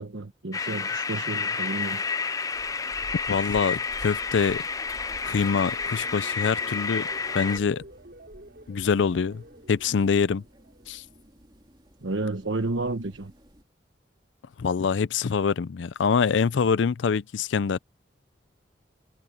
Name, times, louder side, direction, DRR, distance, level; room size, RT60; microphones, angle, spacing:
voice 1, 0.0-2.0 12.0-13.3, right 2 dB, 85° right, 1.1 m, -31 dB
sound 1, 0.5-7.6, left 5 dB, 20° left, 0.4 m, -30 dB
sound 2, 2.5-13.6, equal, 25° right, 2.8 m, -51 dB
voice 2, 3.3-4.6 5.2-7.1 7.3-7.8 8.7-9.4 9.7-10.4 10.9-11.0 14.6-17.8, left 5 dB, 75° left, 0.4 m, -25 dB
sound 3, 4.4-11.5 11.9-12.3, right 1 dB, 55° right, 6.4 m, -50 dB
head